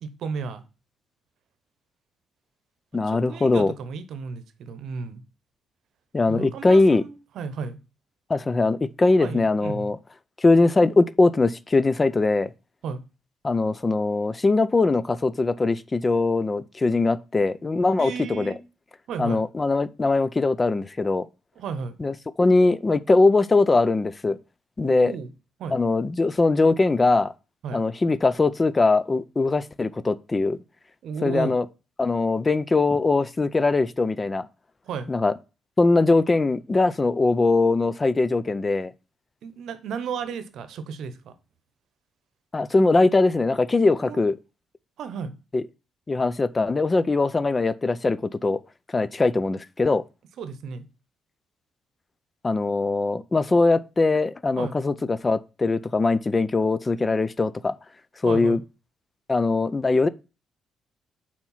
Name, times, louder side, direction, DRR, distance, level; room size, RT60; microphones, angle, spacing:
voice 1, 0.0-0.6 2.9-5.2 6.3-7.8 9.2-9.9 12.8-13.0 18.0-18.6 19.1-19.4 21.6-21.9 24.8-25.3 25.6-25.8 27.6-27.8 31.0-31.6 34.8-35.1 39.4-41.3 44.0-44.2 45.0-45.3 50.4-50.9 54.6-54.8 58.2-58.6, right 6 dB, 75° right, 0.8 m, -34 dB
voice 2, 2.9-3.7 6.1-7.0 8.3-10.0 10.4-12.5 13.4-18.5 19.2-21.3 22.0-24.4 24.8-25.1 25.7-27.3 27.7-30.6 31.2-31.6 32.0-34.5 35.1-35.3 35.8-38.9 42.5-44.4 45.5-45.6 46.1-48.6 48.9-50.0 52.4-57.7 58.2-58.6 59.3-60.1, left 3 dB, 25° left, 0.4 m, -21 dB
4.5 x 4.4 x 5.5 m
cardioid pair, 90°, 0 cm